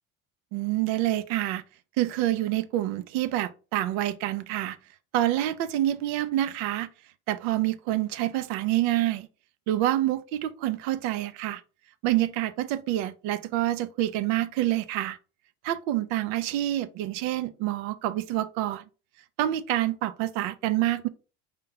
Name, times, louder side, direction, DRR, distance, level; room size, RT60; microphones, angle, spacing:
voice 1, 0.5-1.6 2.0-4.8 5.1-6.9 7.3-9.3 9.7-11.6 12.0-15.2 15.6-18.8 19.4-21.1, right 14 dB, 70° right, 0.6 m, -27 dB
4.3 x 2.5 x 3.9 m
supercardioid pair, 85°, 37 cm